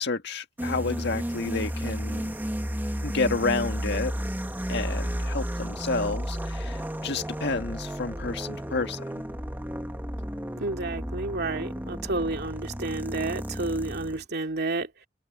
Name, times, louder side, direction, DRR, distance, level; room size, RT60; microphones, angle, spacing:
voice 1, 0.0-2.4 3.0-4.1 4.7-9.2, left 3 dB, 60° left, 1.7 m, -30 dB
sound 1, 0.6-14.2, equal, 10° right, 1.6 m, -33 dB
voice 2, 10.6-14.9, right 2 dB, 55° right, 2.5 m, -30 dB
head